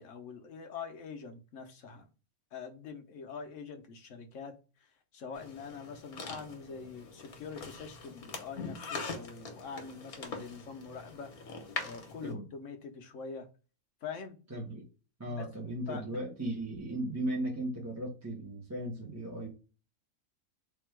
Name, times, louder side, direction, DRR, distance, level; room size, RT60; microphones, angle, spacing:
voice 1, 0.0-2.1 2.5-4.9 5.1-11.4 11.8-13.5 14.0-14.4 15.4-15.5 15.9-16.2, left 5 dB, 60° left, 1.1 m, -44 dB
sound 1, 5.3-12.3, left 4 dB, 75° left, 1.5 m, -43 dB
voice 2, 14.5-14.8 15.2-19.5, right 1 dB, 10° right, 1.0 m, -36 dB
3.6 x 2.8 x 4.5 m
omnidirectional pair, 1.5 m